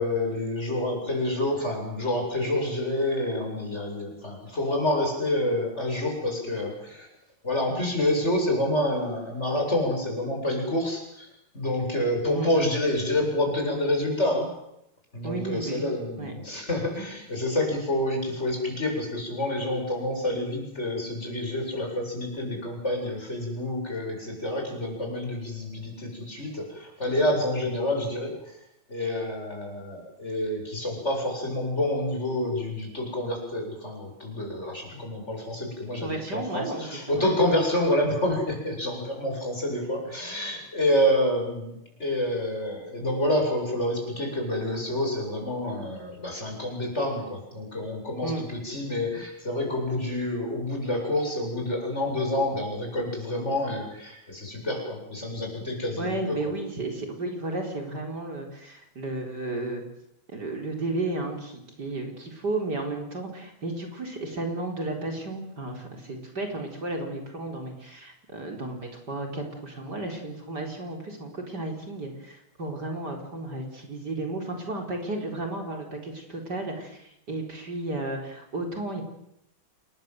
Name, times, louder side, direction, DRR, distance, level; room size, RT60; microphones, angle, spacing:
voice 1, 0.0-7.1 7.4-11.3 11.5-14.5 15.1-28.3 28.9-56.4, left 1 dB, 30° left, 2 dB, 8.4 m, -28 dB
voice 2, 15.2-16.3 36.0-37.3 48.2-48.4 56.0-59.8 60.3-79.0, right 2 dB, 50° right, 2 dB, 4.9 m, -33 dB
29.0 x 21.5 x 7.9 m, 0.79 s
omnidirectional pair, 2.3 m